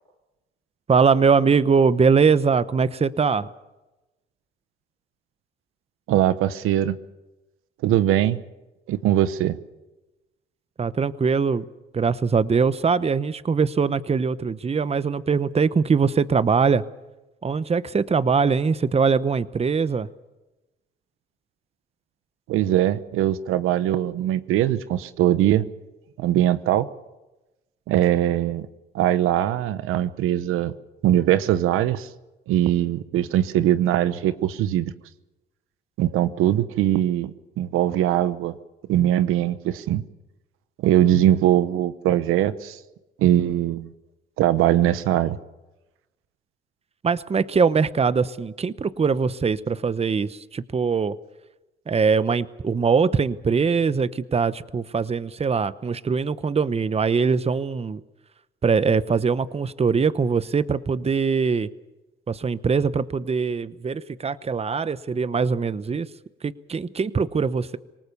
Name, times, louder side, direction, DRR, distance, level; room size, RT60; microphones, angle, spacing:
voice 1, 0.9-3.5 10.8-11.6 11.9-16.8 17.4-20.1 47.0-51.2 51.9-58.0 58.6-61.7 62.3-66.1 66.4-67.8, right 5 dB, 30° right, 16 dB, 0.9 m, -22 dB
voice 2, 6.1-7.0 7.8-8.4 8.9-9.6 22.5-25.7 26.2-26.9 27.9-28.7 28.9-30.7 31.0-32.1 32.5-34.9 36.0-38.5 38.9-40.0 40.8-42.8 43.2-43.9 44.4-45.4, right 12 dB, 85° right, 14 dB, 1.0 m, -21 dB
26.5 x 19.0 x 6.9 m, 1.0 s
cardioid pair, 80°, 21 cm